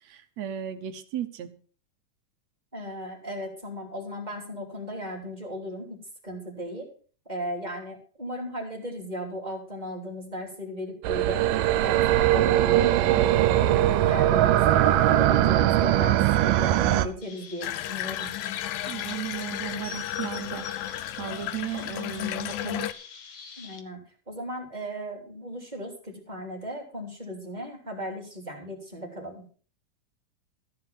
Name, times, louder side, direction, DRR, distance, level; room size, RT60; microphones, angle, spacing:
voice 1, 0.0-1.5 18.9-22.9, right 10 dB, 65° right, 8 dB, 2.1 m, -35 dB
voice 2, 2.7-6.0 6.2-6.9 7.3-11.5 11.8-12.0 12.2-13.2 13.6-18.7 23.6-24.0 24.3-29.4, equal, 15° right, 0 dB, 3.1 m, -36 dB
sound 1, 11.0-17.1, right 13 dB, 90° right, 2.4 m, -21 dB
Chirp tweet, 17.2-23.8, left 5 dB, 50° left, 1.6 m, -45 dB
Water tap faucet / Bathtub (filling or washing), 17.6-22.9, left 14 dB, 75° left, 2.0 m, -33 dB
14.5 x 5.7 x 7.3 m, 0.43 s
omnidirectional pair, 3.7 m